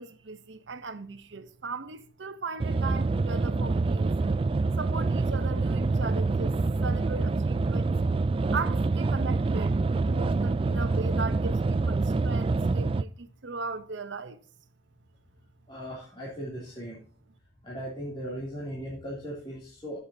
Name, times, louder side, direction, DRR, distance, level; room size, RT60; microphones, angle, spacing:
voice 1, 0.0-4.5 4.8-6.5 6.8-7.9 8.5-9.8 10.0-14.4, right 4 dB, 75° right, 0.8 m, -38 dB
sound 1, 2.6-13.0, right 3 dB, 30° right, 0.3 m, -26 dB
voice 2, 15.7-17.0 17.6-20.0, equal, 25° left, 2.9 m, -38 dB
15.5 x 6.8 x 2.7 m
head